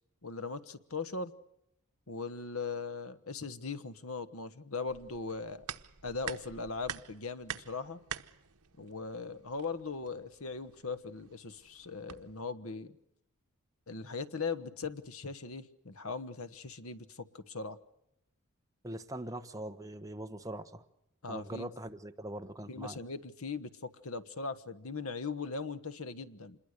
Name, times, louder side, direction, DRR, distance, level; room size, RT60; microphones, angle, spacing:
voice 1, 0.2-1.3 2.1-5.6 6.0-8.0 8.8-13.0 13.9-17.8 21.2-21.7 22.7-26.6, left 4 dB, 65° left, 12 dB, 1.3 m, -39 dB
sound 1, 4.9-12.5, right 9 dB, 85° right, 1.0 m, -47 dB
voice 2, 18.8-20.8 21.3-23.0, right 1 dB, 15° right, 7 dB, 1.2 m, -42 dB
27.0 x 21.5 x 6.7 m, 0.82 s
head